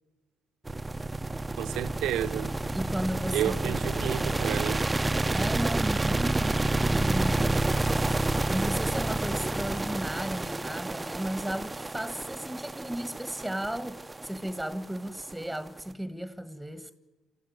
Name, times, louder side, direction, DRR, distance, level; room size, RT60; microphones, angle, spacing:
sound 1, 0.7-15.8, right 2 dB, 20° right, 0.8 m, -29 dB
voice 1, 1.6-2.5 3.3-4.8, right 11 dB, 75° right, 0.9 m, -31 dB
voice 2, 2.7-3.8 5.3-8.0 8.5-16.9, right 1 dB, ahead, 1.6 m, -35 dB
Water / Sink (filling or washing), 5.9-12.3, left 5 dB, 60° left, 2.5 m, -51 dB
28.5 x 14.0 x 9.6 m
hypercardioid pair, 55°, 0 cm